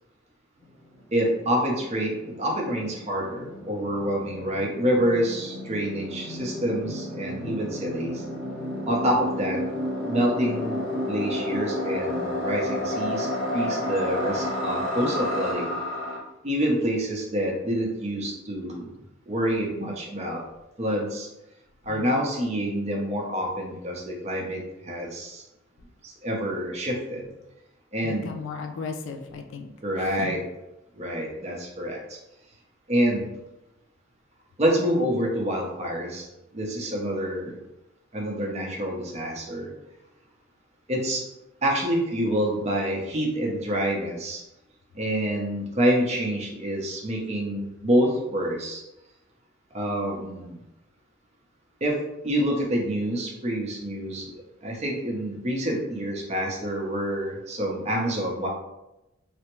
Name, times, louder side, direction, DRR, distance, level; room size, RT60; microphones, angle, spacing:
sound 1, 0.7-0.8 0.9-16.2, left 1 dB, 65° right, 0.9 m, -31 dB
voice 1, 1.1-8.2 8.8-9.6 10.0-10.8 11.1-15.7 16.4-18.9 19.3-20.4 20.8-21.3 21.8-25.4 26.0-27.3 27.9-28.3 29.8-30.4 31.0-32.2 32.9-33.3 34.6-36.3 36.5-37.6 38.1-39.7 40.9-41.3 41.6-44.4 44.9-48.8 49.7-50.6 51.8-52.0 52.2-58.5, equal, 30° right, -1 dB, 0.6 m, -27 dB
voice 2, 21.9-22.2 28.0-29.7 30.0-30.4, left 4 dB, 65° left, 6 dB, 0.3 m, -36 dB
3.3 x 2.0 x 3.0 m, 0.92 s
head